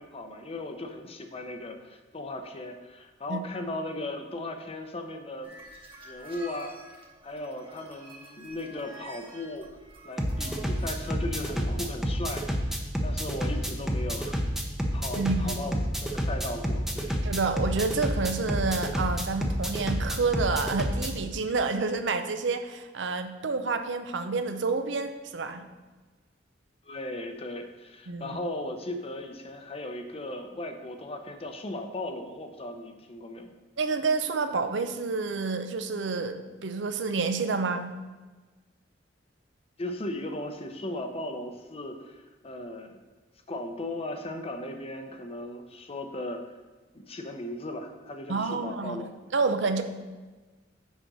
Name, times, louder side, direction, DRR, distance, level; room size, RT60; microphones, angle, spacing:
voice 1, 0.0-5.5 6.0-6.8 7.2-9.7 10.0-14.4 14.9-15.7 16.0-17.2 26.8-33.5 39.8-43.0 43.5-46.5 46.9-49.1 49.8-49.9, left 1 dB, 35° left, 5 dB, 0.7 m, -37 dB
sound 1, 5.4-11.1, right 2 dB, 30° right, 1.4 m, -48 dB
sound 2, 10.2-21.1, equal, ahead, 0.7 m, -29 dB
voice 2, 15.2-15.6 17.2-25.6 28.1-28.4 33.8-38.0 48.3-49.0 49.3-49.8, right 4 dB, 75° right, 8 dB, 0.7 m, -29 dB
6.4 x 5.1 x 6.2 m, 1.3 s
head